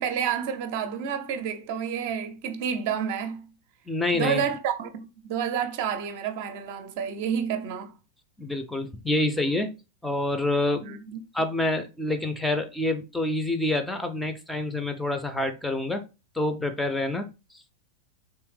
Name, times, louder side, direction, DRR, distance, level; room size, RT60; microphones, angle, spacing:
voice 1, 0.0-3.5 4.1-7.9 10.8-11.2, right 7 dB, 50° right, 0.5 m, -29 dB
voice 2, 3.9-4.4 8.4-9.7 10.0-10.8 11.3-16.0 16.3-17.2, left 2 dB, 5° left, 0.5 m, -27 dB
3.4 x 3.1 x 3.2 m
figure-of-eight pair, 90°, 0 cm